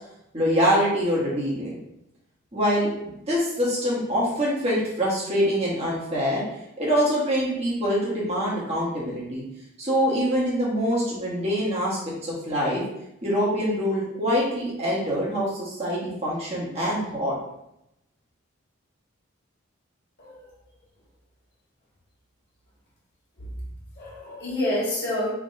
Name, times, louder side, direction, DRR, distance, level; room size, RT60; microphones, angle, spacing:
voice 1, 0.3-1.8 2.5-6.4 6.8-9.4 9.8-12.8 13.2-17.3, equal, 30° right, -6 dB, 1.2 m, -25 dB
voice 2, 20.2-20.5 23.4-23.5 23.9-25.3, left 1 dB, 50° left, -6 dB, 1.6 m, -28 dB
3.5 x 3.0 x 4.0 m, 0.83 s
head